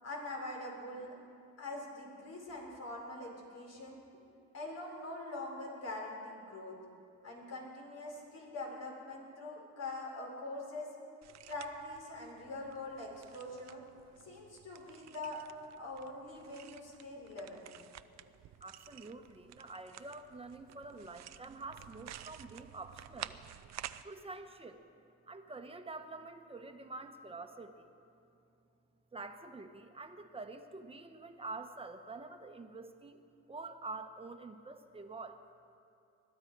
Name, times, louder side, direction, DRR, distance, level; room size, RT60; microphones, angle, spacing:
voice 1, 0.0-1.1 1.6-4.0 4.5-6.8 7.2-10.9 11.5-13.8 14.2-15.4 15.8-17.7, left 2 dB, 55° left, -1 dB, 4.3 m, -43 dB
sound 1, 11.2-24.0, right 12 dB, 60° right, 0.6 m, -52 dB
voice 2, 18.6-23.4 24.0-24.8 25.3-27.9 29.1-33.2 33.5-35.4, right 3 dB, 20° right, 6 dB, 1.2 m, -47 dB
21.0 x 12.5 x 4.7 m, 2.5 s
cardioid pair, 90°, 30 cm